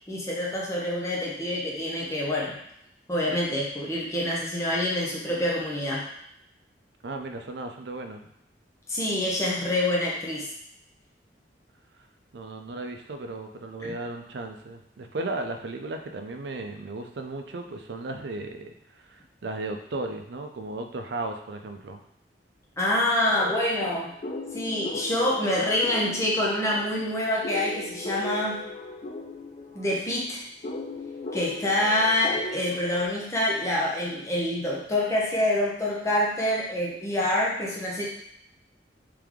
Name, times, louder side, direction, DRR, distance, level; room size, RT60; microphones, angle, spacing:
voice 1, 0.1-2.6 3.1-6.0 8.9-10.5 13.8-13.9 22.8-24.1 24.5-28.6 29.7-30.4 31.3-38.1, left 1 dB, 15° left, -5 dB, 0.8 m, -26 dB
voice 2, 7.0-8.2 12.3-22.0, right 2 dB, 70° right, 5 dB, 0.5 m, -35 dB
sound 1, 23.8-33.1, left 2 dB, 40° left, 0.4 m, -38 dB
3.4 x 3.3 x 3.5 m, 0.77 s
head